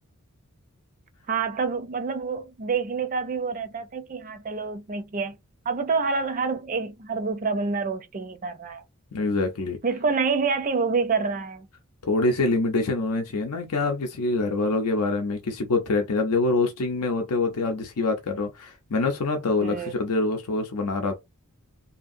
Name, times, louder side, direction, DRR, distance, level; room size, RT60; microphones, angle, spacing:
voice 1, 1.3-5.4 5.7-8.8 9.8-11.7 19.6-19.9, right 5 dB, 35° right, 0.5 m, -27 dB
voice 2, 9.1-9.8 12.1-21.1, left 3 dB, 80° left, 0.6 m, -25 dB
2.8 x 2.5 x 2.6 m
head